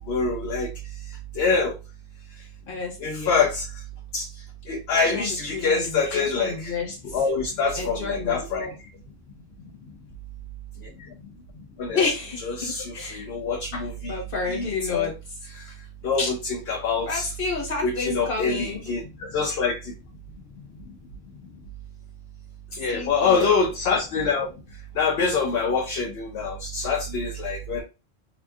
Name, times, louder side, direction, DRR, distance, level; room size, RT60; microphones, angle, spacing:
voice 1, 0.1-0.7 1.4-1.7 3.0-3.6 4.1-4.2 4.7-6.7 7.0-8.7 11.8-12.0 12.5-14.1 14.5-15.1 16.0-17.3 17.8-19.9 22.8-24.5 25.0-27.8, left 4 dB, 75° left, 1 dB, 0.8 m, -25 dB
voice 2, 2.7-3.4 4.9-7.2 7.8-8.7 11.9-13.3 14.1-15.1 16.2-16.3 17.0-18.9 22.9-23.5, left 4 dB, 55° left, -1 dB, 1.2 m, -30 dB
2.7 x 2.5 x 2.3 m, 0.28 s
omnidirectional pair, 1.1 m